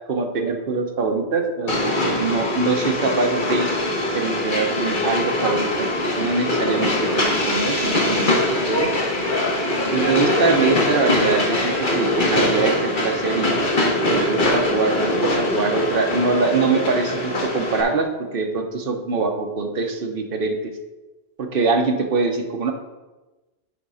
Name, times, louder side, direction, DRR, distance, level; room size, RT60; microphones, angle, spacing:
voice 1, 0.1-3.7 4.1-5.9 6.2-8.9 9.9-20.7 21.4-22.7, right 4 dB, 60° right, 4 dB, 1.0 m, -23 dB
Train, 1.7-17.8, left 1 dB, 50° left, 1.3 m, -22 dB
8.9 x 3.7 x 5.4 m, 1.2 s
omnidirectional pair, 1.1 m